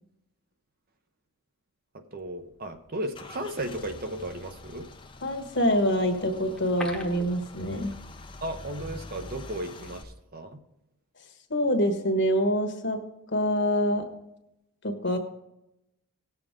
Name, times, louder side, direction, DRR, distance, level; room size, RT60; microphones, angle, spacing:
voice 1, 1.9-4.9 8.4-10.6 15.1-15.2, right 1 dB, 40° right, 7 dB, 0.8 m, -35 dB
Car / Engine starting / Idling, 2.2-10.0, left 2 dB, 20° left, 0.6 m, -45 dB
voice 2, 5.2-7.9 11.5-13.0 13.3-14.1 14.8-15.2, equal, 50° left, 6 dB, 1.3 m, -25 dB
sound 1, 6.5-8.3 8.5-8.6 9.1-9.2, left 1 dB, ahead, 1.0 m, -40 dB
18.0 x 6.9 x 3.6 m, 0.87 s
head